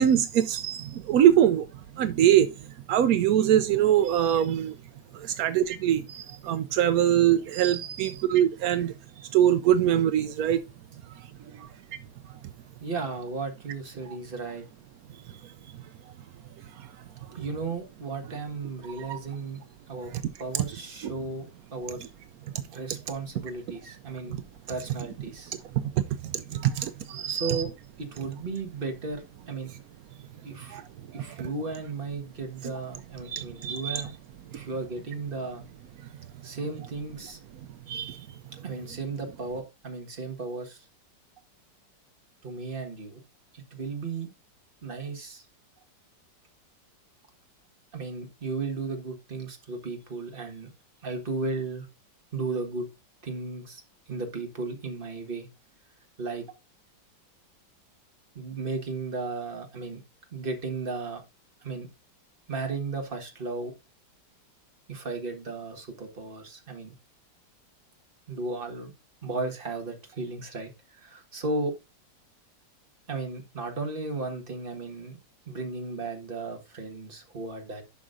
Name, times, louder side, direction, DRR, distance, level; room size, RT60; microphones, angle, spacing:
voice 1, 0.0-1.7 2.0-2.5 2.9-4.8 5.1-8.9 9.3-10.6 11.5-11.7 14.1-14.2 15.4-15.5 16.8-16.9 18.9-19.2 20.1-20.2 21.0-21.1 21.9-22.0 24.3-24.4 25.7-27.6 30.7-30.8 31.2-31.5 33.3-34.0 34.5-34.6 37.9-38.4, right 10 dB, 75° right, 0.8 m, -24 dB
voice 2, 12.8-14.6 17.3-19.6 19.9-20.1 20.4-22.0 22.7-24.4 24.7-25.6 27.3-27.7 28.0-29.7 30.4-30.8 31.1-34.1 34.5-35.6 36.4-37.4 38.6-40.8 42.4-43.2 43.5-44.3 44.8-45.4 47.9-50.7 51.0-51.8 52.3-52.9 53.2-55.5 56.2-56.5 58.3-60.0 60.3-61.2 61.6-61.9 62.5-63.7 64.9-66.9 68.3-68.9 69.2-71.7 73.1-75.2 75.5-77.8, right 3 dB, 30° right, 1.6 m, -35 dB
11.0 x 6.1 x 2.6 m
omnidirectional pair, 2.1 m